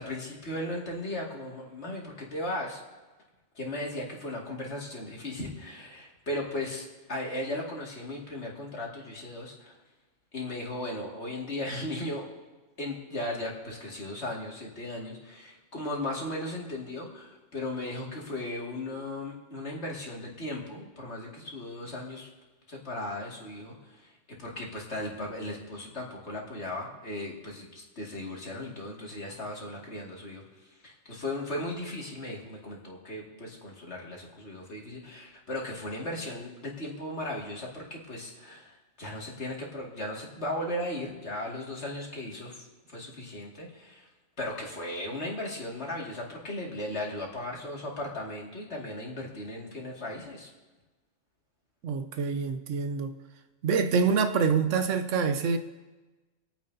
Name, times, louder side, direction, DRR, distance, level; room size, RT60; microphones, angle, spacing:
voice 1, 0.0-2.8 3.6-9.8 10.3-12.2 12.8-22.3 22.7-24.1 24.4-30.4 30.8-44.1 44.4-50.5, left 1 dB, 65° left, 2.5 m, -36 dB
voice 2, 51.8-53.1 53.6-55.6, right 5 dB, 90° right, 1.1 m, -26 dB
26.0 x 9.2 x 2.7 m
omnidirectional pair, 1.2 m